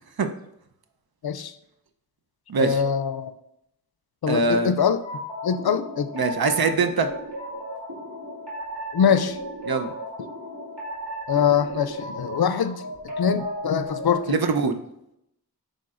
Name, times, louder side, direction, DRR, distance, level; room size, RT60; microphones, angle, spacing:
voice 1, 2.6-3.3 4.2-5.0 5.4-6.1 8.9-9.4 11.3-12.8 13.2-14.4, left 7 dB, 70° left, 11 dB, 0.5 m, -23 dB
voice 2, 4.3-4.7 6.1-7.1 9.7-9.9 14.3-14.8, right 4 dB, 65° right, 7 dB, 0.7 m, -22 dB
sound 1, 5.0-14.3, equal, 90° right, 2.2 m, -35 dB
7.6 x 5.2 x 2.5 m, 0.79 s
wide cardioid pair, 40°, 39 cm